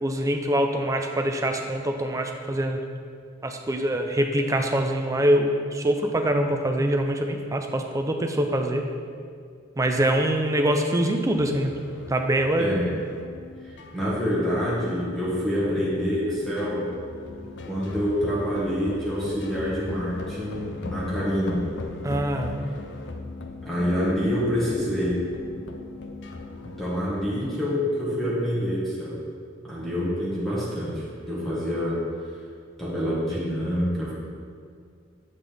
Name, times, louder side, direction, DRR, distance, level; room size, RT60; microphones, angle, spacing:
voice 1, 0.0-2.8 3.4-8.9 9.8-11.7 12.1-12.8 22.0-22.5, right 1 dB, 15° right, 4 dB, 0.5 m, -24 dB
sound 1, 11.3-26.9, left 3 dB, 65° left, 0.5 m, -39 dB
voice 2, 13.6-16.9 17.7-21.6 23.6-25.2 26.6-29.2 29.6-32.0 32.8-34.1, equal, ahead, -9 dB, 1.7 m, -26 dB
8.0 x 5.7 x 3.5 m, 2.2 s
head